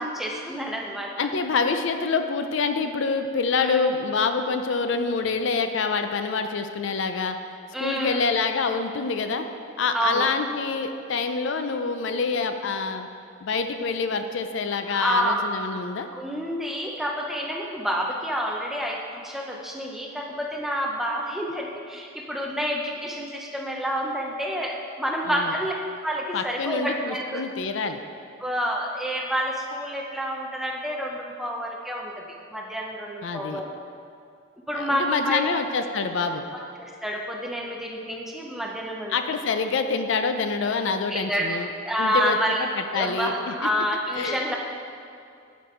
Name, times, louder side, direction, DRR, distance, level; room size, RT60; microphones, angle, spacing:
voice 1, 0.0-1.1 3.6-3.9 7.7-8.2 9.9-10.3 14.9-15.4 16.1-25.7 26.0-27.4 28.4-32.1 32.5-33.6 34.7-35.5 36.8-39.1 41.1-42.6 42.9-44.6, equal, ahead, -1 dB, 0.6 m, -28 dB
voice 2, 1.2-7.4 7.8-9.5 9.8-13.1 13.4-16.1 25.3-25.5 26.3-28.0 33.2-33.6 34.7-36.4 39.1-41.7 42.0-42.4 42.8-43.5 44.1-44.4, left 4 dB, 60° left, 7 dB, 0.4 m, -26 dB
10.0 x 5.2 x 4.4 m, 2.4 s
head